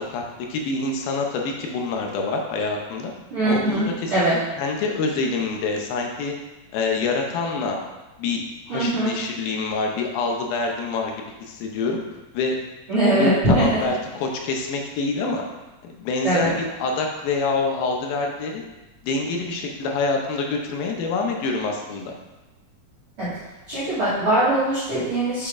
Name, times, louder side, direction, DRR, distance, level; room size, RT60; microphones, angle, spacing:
voice 1, 0.0-3.1 3.4-4.3 4.6-6.3 6.7-7.8 8.2-11.1 11.5-12.0 12.3-12.5 13.2-15.4 15.8-18.6 19.0-22.1, left 3 dB, 75° left, 1 dB, 2.4 m, -26 dB
voice 2, 3.3-4.3 8.7-9.2 12.9-13.8 16.2-16.5 23.2-23.3 23.7-25.5, right 1 dB, 45° right, -12 dB, 2.1 m, -21 dB
7.1 x 6.7 x 2.5 m, 1.1 s
omnidirectional pair, 4.5 m